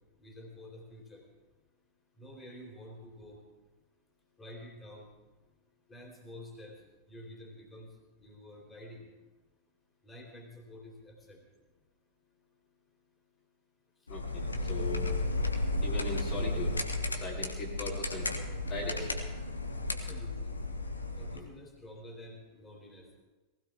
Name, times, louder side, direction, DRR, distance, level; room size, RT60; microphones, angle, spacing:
voice 1, 0.2-1.3 2.2-3.4 4.4-5.1 5.9-6.8 7.1-7.9 8.2-9.1 10.0-11.4 19.9-20.5 21.2-23.1, left 1 dB, 15° left, 1 dB, 3.1 m, -49 dB
sound 1, 14.1-21.4, left 2 dB, 80° left, 1.3 m, -33 dB
voice 2, 14.1-15.2 15.8-16.8 17.1-18.3 18.6-19.2 21.3-21.5, left 2 dB, 40° left, -3 dB, 2.7 m, -39 dB
19.0 x 16.0 x 3.5 m, 1.2 s
figure-of-eight pair, 90°, 0 cm